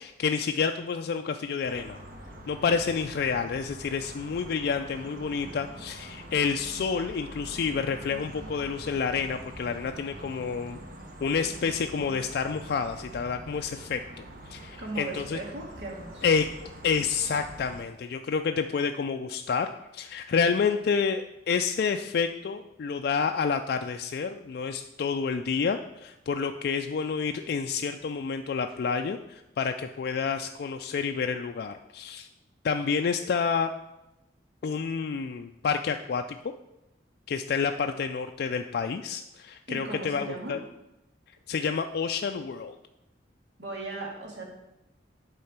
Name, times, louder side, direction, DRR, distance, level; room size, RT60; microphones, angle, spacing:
voice 1, 0.0-2.0 2.5-10.8 11.2-15.4 16.2-16.5 16.8-19.7 19.9-32.3 32.6-33.7 34.6-36.4 37.3-40.6 41.5-42.8, left 5 dB, 60° left, 6 dB, 0.3 m, -29 dB
sound 1, 1.6-17.8, right 1 dB, 50° right, 1.2 m, -44 dB
voice 2, 14.8-16.4 39.7-40.6 43.6-44.4, right 2 dB, 70° right, -1 dB, 2.0 m, -37 dB
8.5 x 3.8 x 5.9 m, 0.95 s
head